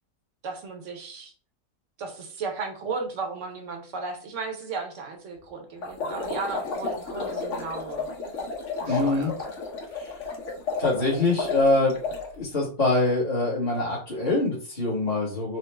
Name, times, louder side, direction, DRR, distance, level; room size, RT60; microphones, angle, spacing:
voice 1, 0.4-1.3 2.0-8.1 8.8-9.3, right 4 dB, 65° right, 4 dB, 1.0 m, -35 dB
sound 1, 5.8-12.3, left 4 dB, 65° left, 1.0 m, -32 dB
voice 2, 8.9-9.3 9.9-10.1 10.8-11.9 12.3-15.6, left 2 dB, 35° left, -8 dB, 1.1 m, -24 dB
4.0 x 2.0 x 3.2 m, 0.42 s
omnidirectional pair, 1.5 m